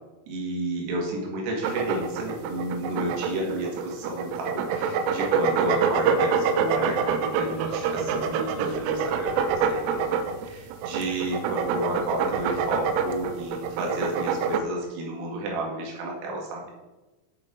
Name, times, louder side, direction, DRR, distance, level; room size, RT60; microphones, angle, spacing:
voice 1, 0.3-10.0 10.4-16.7, right 1 dB, 65° right, -1 dB, 3.6 m, -31 dB
sound 1, 1.6-14.6, right 6 dB, 85° right, 3.2 m, -26 dB
8.4 x 6.7 x 5.1 m, 1.1 s
omnidirectional pair, 5.8 m